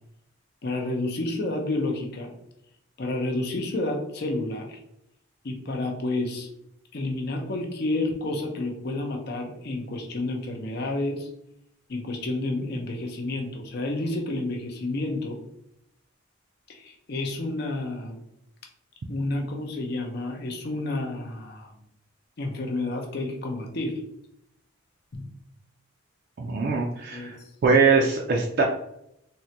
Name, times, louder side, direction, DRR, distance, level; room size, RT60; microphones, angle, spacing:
voice 1, 0.6-2.3 3.0-4.8 5.4-6.5 6.9-11.3 11.9-15.4 16.7-18.2 19.1-21.7 22.4-24.0 25.1-25.3 27.1-27.3, left 2 dB, 50° left, 2 dB, 0.6 m, -30 dB
voice 2, 26.4-27.4 27.6-28.6, right 4 dB, 50° right, 0 dB, 0.4 m, -22 dB
3.6 x 2.1 x 2.8 m, 0.78 s
head